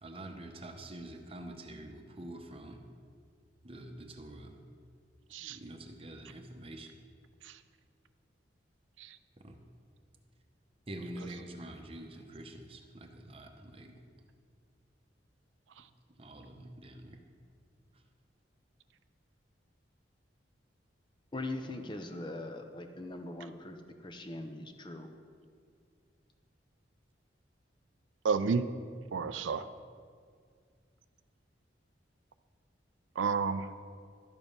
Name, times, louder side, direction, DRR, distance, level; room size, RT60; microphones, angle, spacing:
voice 1, 0.0-2.8 3.6-4.6 5.4-7.0 9.4-9.6 10.9-13.9 16.2-17.2, right 1 dB, 30° right, 4 dB, 0.9 m, -46 dB
voice 2, 21.3-25.1, left 2 dB, 25° left, 6 dB, 0.7 m, -41 dB
voice 3, 28.2-28.6 29.1-29.7 33.2-33.7, right 5 dB, 90° right, 11 dB, 0.5 m, -31 dB
12.0 x 7.0 x 5.4 m, 2.1 s
head